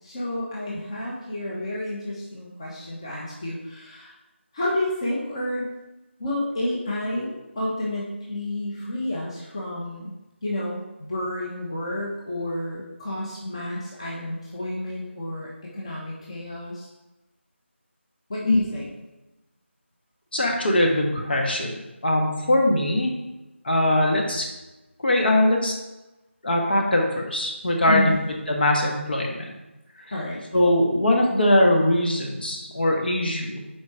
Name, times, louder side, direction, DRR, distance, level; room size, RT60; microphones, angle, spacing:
voice 1, 0.0-4.1 4.5-5.7 6.2-10.1 10.4-16.9 18.3-18.9 27.9-28.2 30.1-30.4, left 1 dB, 25° left, -4 dB, 1.2 m, -30 dB
voice 2, 20.3-21.7 22.0-23.2 23.6-24.4 25.0-25.8 26.4-28.2 28.5-29.5 30.5-33.8, left 1 dB, 50° left, 0 dB, 1.4 m, -21 dB
7.1 x 4.9 x 4.8 m, 1.0 s
figure-of-eight pair, 170°, 7 cm